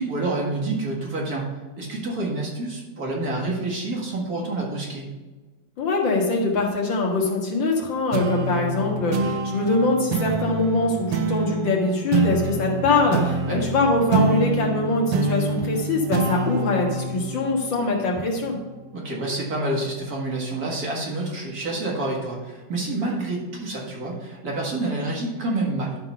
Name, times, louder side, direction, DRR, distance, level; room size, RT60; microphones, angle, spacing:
voice 1, 0.0-1.5 1.8-5.1 13.5-13.6 18.9-26.0, right 2 dB, 55° right, -2 dB, 2.3 m, -28 dB
voice 2, 5.8-18.6, left 3 dB, 90° left, -1 dB, 2.3 m, -23 dB
sound 1, 8.1-18.9, right 3 dB, 85° right, 1.5 m, -26 dB
11.5 x 4.0 x 5.5 m, 1.2 s
omnidirectional pair, 2.0 m